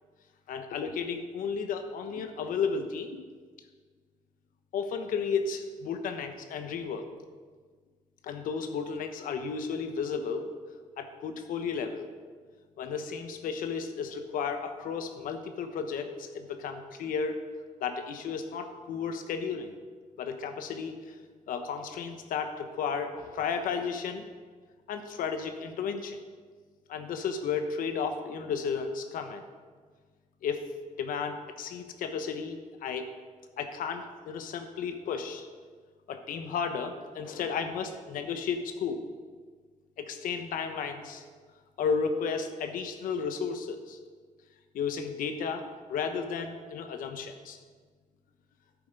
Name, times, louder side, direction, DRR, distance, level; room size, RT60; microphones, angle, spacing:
voice 1, 0.5-3.2 4.7-7.1 8.2-10.5 11.0-12.1 12.8-17.4 17.8-19.7 20.2-21.2 21.5-24.3 24.9-26.2 26.9-29.4 30.4-30.7 31.0-33.1 33.6-35.5 36.1-39.0 40.0-41.2 41.8-44.0 44.7-47.6, left 6 dB, 85° left, 7 dB, 1.1 m, -33 dB
11.0 x 8.6 x 5.3 m, 1.5 s
cardioid pair, 110°, 14 cm